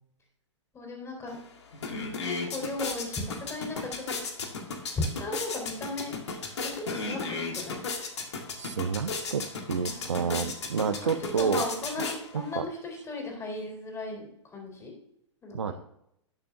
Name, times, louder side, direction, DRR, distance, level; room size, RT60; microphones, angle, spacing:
voice 1, 0.7-1.4 2.2-4.2 4.9-6.1 6.6-7.8 9.8-10.5 10.8-10.9 11.4-14.9 15.4-15.7, left 2 dB, 20° left, 1 dB, 4.1 m, -36 dB
sound 1, 1.3-1.4 1.7-12.6, left 4 dB, 65° left, 1.8 m, -35 dB
voice 2, 8.6-11.6 12.3-12.7 15.5-15.7, right 6 dB, 75° right, 12 dB, 0.7 m, -29 dB
19.0 x 6.8 x 2.7 m, 0.78 s
figure-of-eight pair, 105°, 16 cm